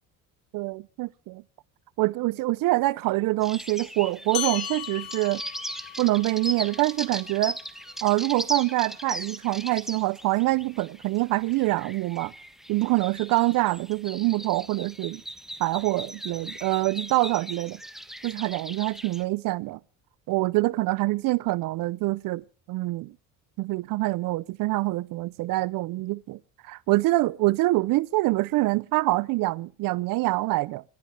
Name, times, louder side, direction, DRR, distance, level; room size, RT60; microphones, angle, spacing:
voice 1, 0.5-1.4 2.0-5.4 6.0-7.6 8.0-12.3 12.7-15.2 15.6-17.8 18.2-19.8 20.3-23.1 23.6-30.8, right 19 dB, 70° right, 0.6 m, -25 dB
sound 1, 3.4-19.2, equal, ahead, 1.3 m, -39 dB
sound 2, 4.3-9.2, left 14 dB, 80° left, 2.4 m, -38 dB
28.0 x 11.5 x 3.3 m
cardioid pair, 140°, 35 cm